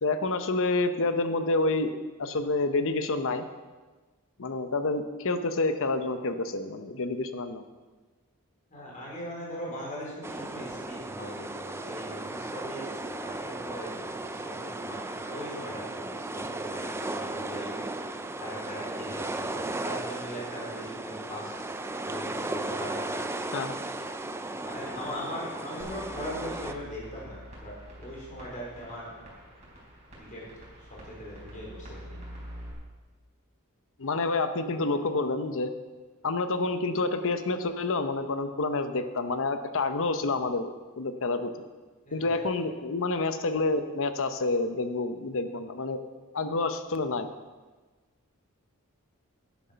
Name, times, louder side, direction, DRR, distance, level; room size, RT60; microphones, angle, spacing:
voice 1, 0.0-1.9 2.2-3.4 4.4-7.6 23.5-23.7 34.0-35.7 36.2-41.5 42.1-46.0 46.3-47.3, left 3 dB, 65° left, 9 dB, 0.9 m, -28 dB
voice 2, 8.7-17.7 18.4-21.5 22.0-23.3 24.6-27.7 28.0-29.2 30.2-30.4 30.8-32.2 42.1-42.5, equal, 35° left, -4 dB, 4.2 m, -40 dB
sound 1, 10.2-26.7, right 2 dB, 10° right, 0.5 m, -35 dB
sound 2, 25.8-32.7, equal, 30° right, 4.5 m, -46 dB
10.5 x 9.2 x 5.8 m, 1.3 s
head